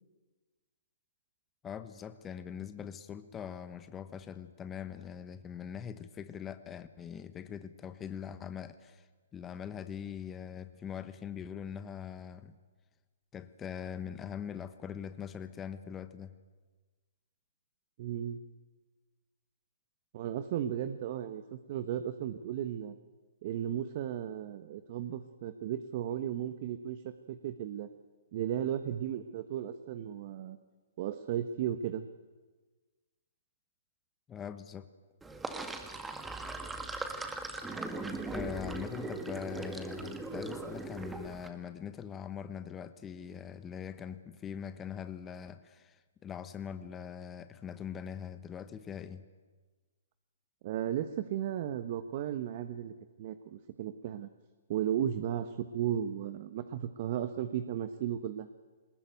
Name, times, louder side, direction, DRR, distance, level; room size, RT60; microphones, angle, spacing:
voice 1, 1.6-12.5 13.3-16.3 34.3-34.9 38.3-49.3, left 8 dB, 20° left, 11 dB, 1.1 m, -42 dB
voice 2, 18.0-18.4 20.1-22.9 23.4-27.9 28.3-30.6 31.0-32.1 50.6-52.9 53.2-54.3 54.7-58.5, right 10 dB, 45° right, 10 dB, 1.2 m, -35 dB
Sink (filling or washing), 35.2-41.5, right 2 dB, 10° right, 2.0 m, -39 dB
22.5 x 20.5 x 9.3 m, 1.3 s
figure-of-eight pair, 125°, 0 cm